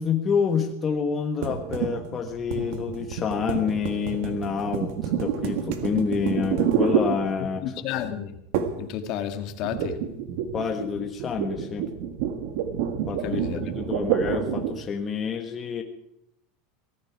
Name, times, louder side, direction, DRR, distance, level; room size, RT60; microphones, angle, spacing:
voice 1, 0.0-7.9 10.5-11.9 13.1-15.8, left 6 dB, 25° left, 3 dB, 1.4 m, -28 dB
sound 1, 1.4-7.7 8.5-8.9 9.2-14.9, right 8 dB, 70° right, 1.7 m, -28 dB
voice 2, 7.6-8.3 8.8-9.9 13.2-13.6, left 10 dB, 55° left, 7 dB, 1.9 m, -31 dB
18.0 x 14.5 x 4.8 m, 0.77 s
supercardioid pair, 130°, 0 cm